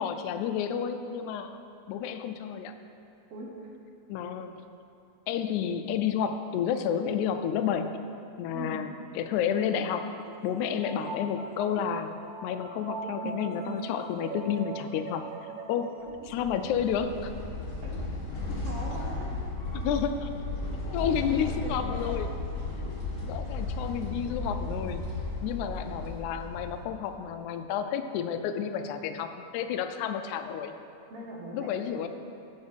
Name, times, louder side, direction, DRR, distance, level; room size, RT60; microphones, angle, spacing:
voice 1, 0.0-1.6 1.9-2.7 4.1-4.6 5.3-8.1 8.4-10.2 10.4-15.3 15.7-17.3 19.7-20.3 20.9-22.3 23.2-25.1 25.4-30.8 31.5-32.1, left 8 dB, 90° left, 8 dB, 2.0 m, -31 dB
sound 1, 9.5-16.1, right 4 dB, 80° right, 2.1 m, -41 dB
sound 2, 16.1-27.1, left 2 dB, 40° left, 1.2 m, -35 dB
voice 2, 18.6-19.3 21.6-22.2 31.1-32.0, right 1 dB, 60° right, -3 dB, 2.1 m, -41 dB
7.4 x 7.0 x 6.3 m, 2.7 s
omnidirectional pair, 3.3 m